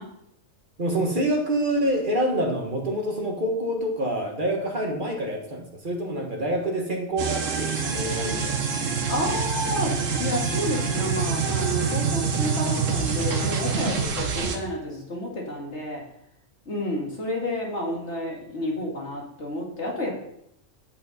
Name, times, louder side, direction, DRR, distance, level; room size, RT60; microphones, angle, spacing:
voice 1, 0.8-8.7 9.1-9.3, right 1 dB, 40° right, 1 dB, 1.5 m, -27 dB
sound 1, 7.2-14.6, right 5 dB, 80° right, 1.4 m, -26 dB
voice 2, 9.1-16.0 16.7-20.2, left 1 dB, 60° left, -2 dB, 2.3 m, -30 dB
8.6 x 7.3 x 4.1 m, 0.75 s
omnidirectional pair, 1.3 m